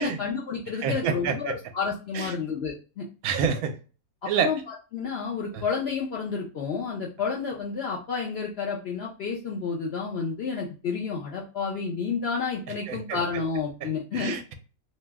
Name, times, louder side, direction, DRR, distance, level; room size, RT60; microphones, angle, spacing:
voice 1, 0.0-3.0 4.2-14.3, left 5 dB, 65° left, -2 dB, 0.6 m, -30 dB
voice 2, 0.8-1.5 2.1-2.3 3.2-3.7 4.3-4.5 12.9-13.2 14.1-14.5, right 6 dB, 75° right, 6 dB, 1.0 m, -27 dB
2.7 x 2.0 x 3.3 m, 0.35 s
omnidirectional pair, 1.6 m